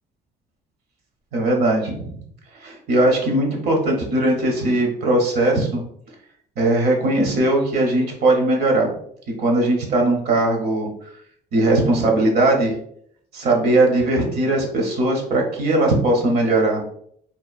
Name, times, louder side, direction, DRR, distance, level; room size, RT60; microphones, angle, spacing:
voice 1, 1.3-2.2 2.6-5.8 6.6-8.9 9.4-10.9 11.5-12.7 13.3-16.8, right 2 dB, 65° right, 1 dB, 0.7 m, -19 dB
2.8 x 2.1 x 2.3 m, 0.66 s
cardioid pair, 110°, 17 cm